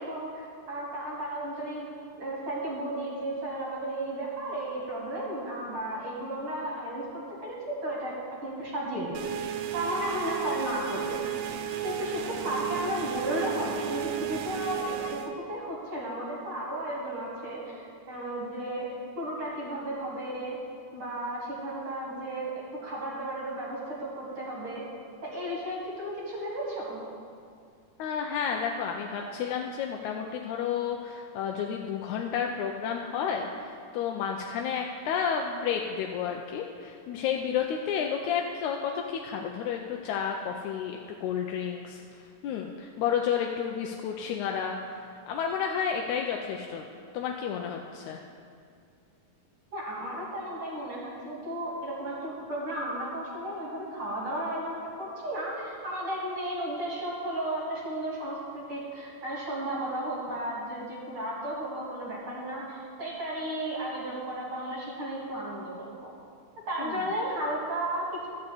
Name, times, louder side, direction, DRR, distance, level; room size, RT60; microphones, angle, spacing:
voice 1, 0.0-1.9 2.2-7.0 7.4-7.6 7.8-8.1 8.4-9.2 9.7-11.3 11.8-18.9 19.2-20.6 20.9-22.5 22.8-24.8 25.2-27.0 49.7-66.1 66.7-68.3, right 1 dB, 45° right, -5 dB, 2.4 m, -34 dB
sound 1, 9.1-15.3, right 10 dB, 80° right, 1.5 m, -34 dB
voice 2, 28.0-46.8 47.1-48.2 66.8-67.0, left 7 dB, 80° left, 1 dB, 1.9 m, -31 dB
12.0 x 5.4 x 7.9 m, 2.3 s
omnidirectional pair, 3.6 m